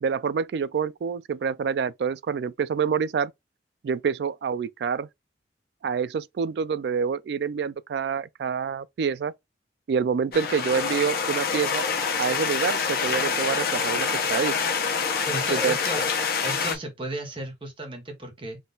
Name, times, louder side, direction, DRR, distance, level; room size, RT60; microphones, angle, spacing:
voice 1, 0.0-3.3 3.8-5.1 5.8-9.3 9.9-11.9 12.2-14.6 15.5-15.8, right 6 dB, 70° right, 0.3 m, -27 dB
sound 1, 10.3-16.8, left 5 dB, 55° left, 0.7 m, -26 dB
voice 2, 15.3-16.1 16.4-18.6, right 1 dB, 30° right, 0.8 m, -34 dB
3.7 x 2.4 x 3.8 m
head